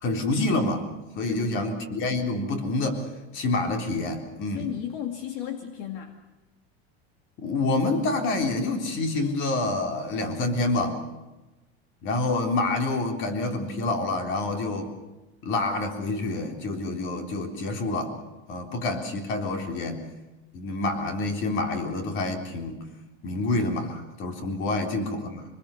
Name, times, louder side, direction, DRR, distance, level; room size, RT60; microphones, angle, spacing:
voice 1, 0.0-0.9 1.2-3.0 3.3-4.7 7.4-11.0 12.0-14.9 15.4-18.1 18.5-20.0 20.5-22.8 23.2-25.5, left 2 dB, 35° left, 5 dB, 3.7 m, -27 dB
voice 2, 1.3-1.8 4.5-6.1 24.7-24.9, left 10 dB, 60° left, 6 dB, 2.3 m, -35 dB
26.0 x 21.0 x 7.0 m, 1.1 s
supercardioid pair, 160°, 33 cm